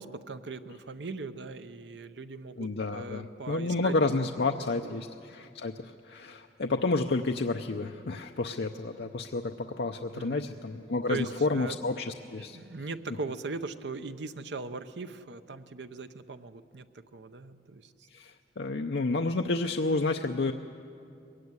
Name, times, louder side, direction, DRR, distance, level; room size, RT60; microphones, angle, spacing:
voice 1, 0.0-3.9 4.8-5.0 10.1-10.5 11.1-11.9 12.4-18.1, right 3 dB, 80° right, 10 dB, 0.8 m, -40 dB
voice 2, 2.6-12.6 18.1-20.5, left 3 dB, 65° left, 4 dB, 0.6 m, -30 dB
21.0 x 16.5 x 9.5 m, 2.5 s
head